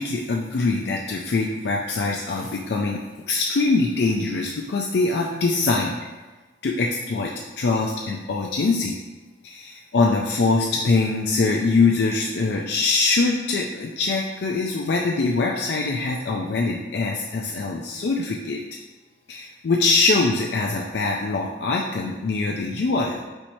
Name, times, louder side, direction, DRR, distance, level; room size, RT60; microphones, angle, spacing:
voice 1, 0.0-6.0 6.6-7.3 7.6-9.0 9.4-18.6 19.3-23.2, left 3 dB, 70° left, -1 dB, 0.4 m, -23 dB
4.4 x 2.7 x 4.3 m, 1.2 s
head